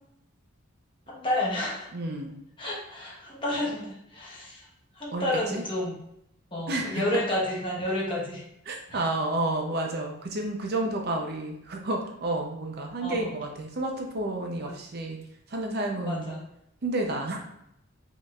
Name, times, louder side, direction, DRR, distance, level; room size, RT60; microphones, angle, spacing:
voice 1, 1.1-1.9 2.6-4.6 5.0-5.9 6.5-8.4 8.9-9.0 13.0-13.3 14.6-14.7 16.0-16.4, left 1 dB, 25° left, -4 dB, 1.1 m, -30 dB
voice 2, 1.9-2.4 5.1-5.6 6.7-7.1 8.7-15.2 15.5-16.3 16.8-17.5, right 2 dB, 45° right, 2 dB, 0.6 m, -30 dB
5.2 x 3.7 x 2.4 m, 0.78 s
head